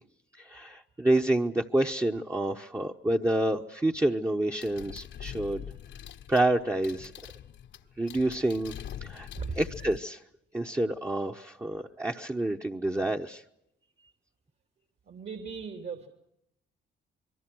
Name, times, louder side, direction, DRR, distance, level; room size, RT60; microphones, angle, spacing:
voice 1, 0.4-5.6 6.3-7.1 8.0-8.7 9.0-9.3 9.6-10.2 10.5-13.4, right 1 dB, 15° right, 1 dB, 1.1 m, -28 dB
sound 1, 4.6-10.0, left 9 dB, 65° left, 1.2 m, -43 dB
voice 2, 15.1-16.1, right 5 dB, 60° right, 5 dB, 3.4 m, -37 dB
26.0 x 23.0 x 6.2 m, 0.79 s
cardioid pair, 90°, 20 cm